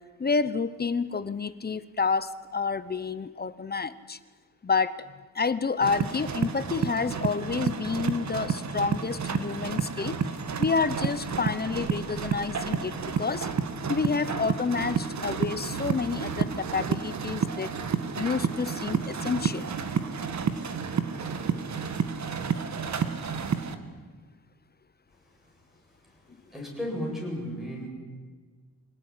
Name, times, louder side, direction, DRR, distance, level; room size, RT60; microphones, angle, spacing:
voice 1, 0.2-4.2 4.6-5.1 5.3-10.2 10.6-13.5 13.9-17.7 18.2-19.7, left 4 dB, 25° left, 15 dB, 0.9 m, -29 dB
sound 1, 5.8-23.7, right 6 dB, 50° right, 1.8 m, -30 dB
voice 2, 25.1-25.6 25.9-27.9, equal, ahead, -1 dB, 8.0 m, -36 dB
25.5 x 18.0 x 9.8 m, 1.5 s
wide cardioid pair, 135°, 35 cm